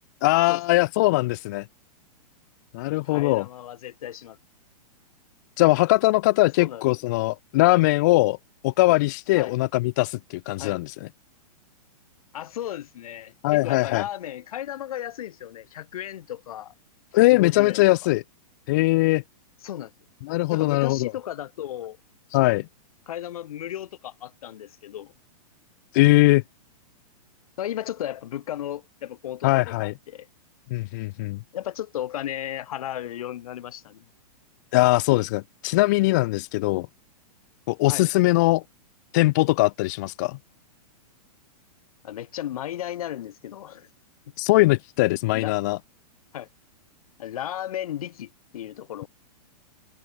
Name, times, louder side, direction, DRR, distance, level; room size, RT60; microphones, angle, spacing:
voice 1, 0.2-1.6 2.7-3.4 5.6-8.4 8.6-11.1 13.4-14.0 17.1-18.2 18.7-19.2 20.2-21.1 22.3-22.7 25.9-26.4 29.4-29.9 30.7-31.4 34.7-36.9 37.7-38.6 39.1-40.4 44.4-45.8, left 20 dB, 30° left, 0.3 m, -21 dB
voice 2, 3.0-4.4 6.6-6.8 9.4-9.6 10.6-10.8 12.3-16.7 17.2-17.9 19.6-19.9 20.5-22.0 23.1-25.1 27.6-30.3 31.5-34.1 37.9-38.1 42.0-43.9 45.3-45.5 46.3-46.5 47.2-49.1, left 12 dB, 60° left, 7.0 m, -34 dB
hypercardioid pair, 160°, 20 cm